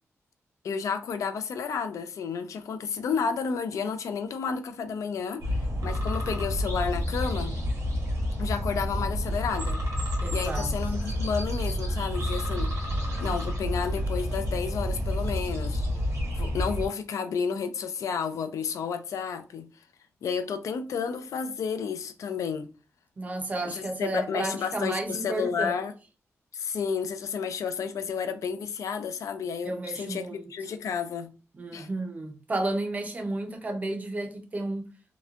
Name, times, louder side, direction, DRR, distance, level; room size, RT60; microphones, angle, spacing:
voice 1, 0.6-7.6 8.4-9.8 10.1-12.7 13.2-15.9 16.3-19.7 20.2-22.7 23.6-25.9 26.5-31.3 31.7-31.9, left 6 dB, 85° left, 0.3 m, -31 dB
sound 1, 5.4-16.9, equal, 75° right, 0.9 m, -29 dB
voice 2, 10.2-10.7 23.2-25.8 29.6-30.5 31.5-34.9, right 2 dB, 30° right, 0.5 m, -32 dB
2.8 x 2.1 x 2.4 m
wide cardioid pair, 160°, 5 cm